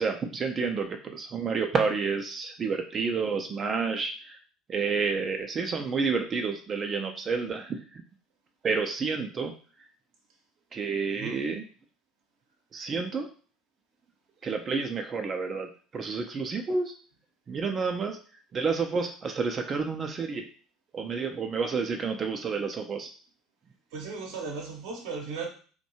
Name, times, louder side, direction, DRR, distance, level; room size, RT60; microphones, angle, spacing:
voice 1, 0.0-4.4 4.7-8.0 8.6-9.5 10.7-11.6 12.7-13.3 14.4-16.9 17.5-18.2 18.5-20.5 20.9-23.1, right 5 dB, 40° right, 4 dB, 0.4 m, -30 dB
voice 2, 23.9-25.5, right 4 dB, 65° right, 0 dB, 0.7 m, -36 dB
2.6 x 2.2 x 2.8 m, 0.40 s
figure-of-eight pair, 65°, 0 cm